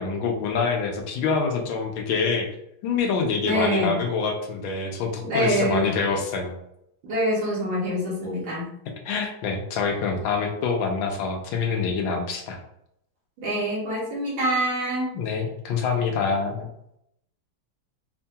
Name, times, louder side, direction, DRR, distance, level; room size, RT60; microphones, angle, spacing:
voice 1, 0.0-2.5 2.8-6.6 9.0-12.6 15.1-16.7, left 5 dB, 80° left, 2 dB, 1.5 m, -26 dB
voice 2, 3.4-3.9 5.2-5.8 7.1-8.7 13.4-15.1, right 1 dB, 75° right, -6 dB, 2.1 m, -25 dB
5.2 x 2.7 x 2.3 m, 0.76 s
omnidirectional pair, 2.1 m